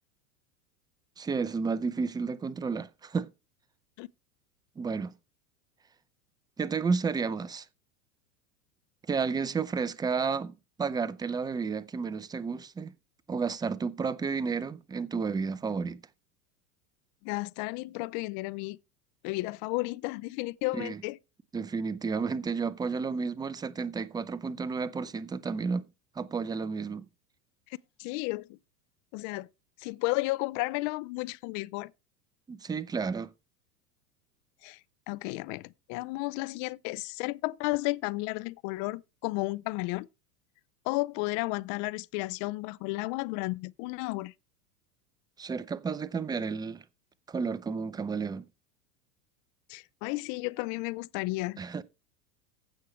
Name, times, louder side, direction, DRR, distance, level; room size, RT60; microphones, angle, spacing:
voice 1, 1.2-3.3 4.8-5.1 6.6-7.7 9.1-12.9 13.3-16.0 20.7-21.0 21.5-25.9 26.2-27.1 32.5-33.3 45.4-46.8 47.3-48.5 51.6-51.8, right 5 dB, 10° right, 0.5 m, -32 dB
voice 2, 17.2-18.8 19.2-21.2 28.0-28.6 29.1-29.5 29.8-31.9 34.6-34.8 35.1-40.1 40.8-44.3 49.7-51.6, left 22 dB, 40° left, 0.5 m, -33 dB
15.5 x 6.3 x 3.1 m
hypercardioid pair, 100°, 47 cm